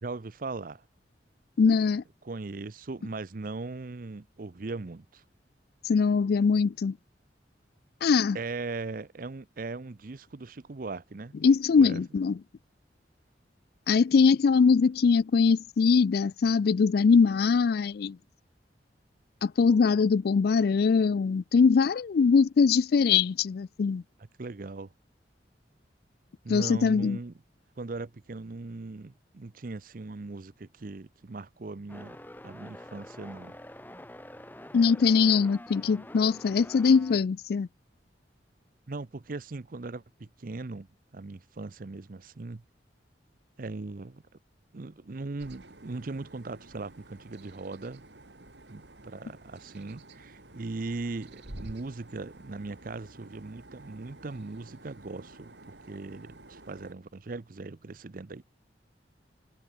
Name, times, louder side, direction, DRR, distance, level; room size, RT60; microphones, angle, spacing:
voice 1, 0.0-0.8 2.2-5.2 8.3-11.3 11.8-12.0 24.4-24.9 26.4-27.3 27.8-32.2 32.4-33.6 38.9-40.9 41.1-42.6 43.6-44.2 44.7-48.0 48.7-58.4, right 3 dB, 50° right, 0.6 m, -39 dB
voice 2, 1.6-2.0 5.9-7.0 8.0-8.4 11.4-12.4 13.9-18.2 19.4-24.0 26.5-27.2 34.7-37.7, left 5 dB, 60° left, 0.4 m, -22 dB
sound 1, 31.9-37.2, left 1 dB, 10° left, 2.2 m, -46 dB
sound 2, 45.4-56.9, right 2 dB, 75° right, 3.2 m, -50 dB
head